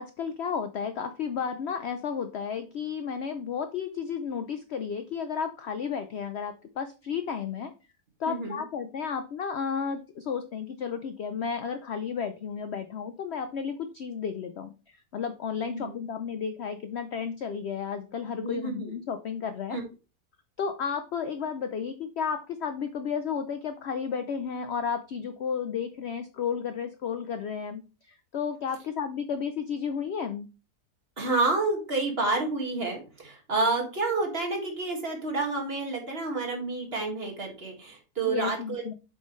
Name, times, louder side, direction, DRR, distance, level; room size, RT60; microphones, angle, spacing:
voice 1, 0.0-7.7 8.2-19.8 20.6-30.5 38.2-38.9, left 6 dB, 65° left, 8 dB, 0.7 m, -33 dB
voice 2, 8.3-8.6 15.7-15.9 18.4-18.9 19.7-19.8 31.2-38.8, right 3 dB, 40° right, 1 dB, 2.0 m, -29 dB
7.8 x 5.6 x 3.1 m, 0.32 s
omnidirectional pair, 1.7 m